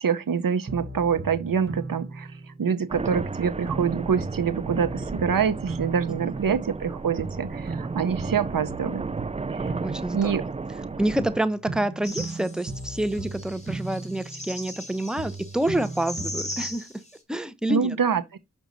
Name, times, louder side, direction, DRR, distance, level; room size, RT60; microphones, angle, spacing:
voice 1, 0.0-9.1 9.5-9.7 10.1-10.4 17.7-18.4, right 7 dB, 80° right, 0.8 m, -26 dB
sound 1, 0.7-2.8 3.2-6.9 7.2-10.8 11.2-14.9 15.2-16.8, right 3 dB, 35° right, 1.4 m, -37 dB
sound 2, 2.9-11.4, right 4 dB, 20° right, 0.3 m, -34 dB
voice 2, 9.8-10.5 11.0-16.9 17.3-18.0, right 1 dB, ahead, 0.9 m, -28 dB
sound 3, 12.0-17.1, left 1 dB, 20° left, 4.5 m, -39 dB
6.2 x 6.1 x 4.0 m
wide cardioid pair, 55°, 33 cm